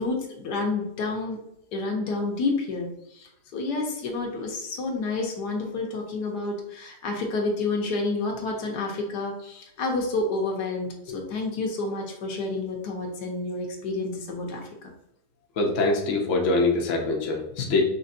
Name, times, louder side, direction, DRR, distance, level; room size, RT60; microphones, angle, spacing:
voice 1, 0.0-1.4 1.7-14.9, left 3 dB, 75° left, 1 dB, 1.4 m, -29 dB
voice 2, 15.6-17.9, left 3 dB, 60° left, 1 dB, 1.0 m, -23 dB
5.3 x 3.2 x 2.6 m, 0.79 s
omnidirectional pair, 1.8 m